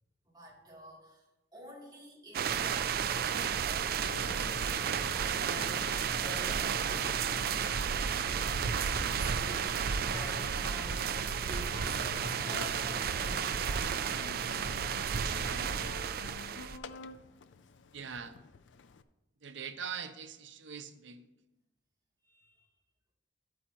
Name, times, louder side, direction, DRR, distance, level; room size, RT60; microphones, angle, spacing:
voice 1, 0.2-2.6 3.4-4.5 5.1-7.6 8.4-14.7 22.2-22.7, equal, 25° right, -7 dB, 3.1 m, -50 dB
sound 1, 2.3-16.8, right 7 dB, 55° right, 0.4 m, -32 dB
Engine, 4.0-19.0, left 4 dB, 85° left, 0.5 m, -47 dB
voice 2, 17.9-18.4 19.4-21.3, right 7 dB, 90° right, 10 dB, 0.7 m, -42 dB
11.5 x 8.6 x 3.0 m, 0.99 s
head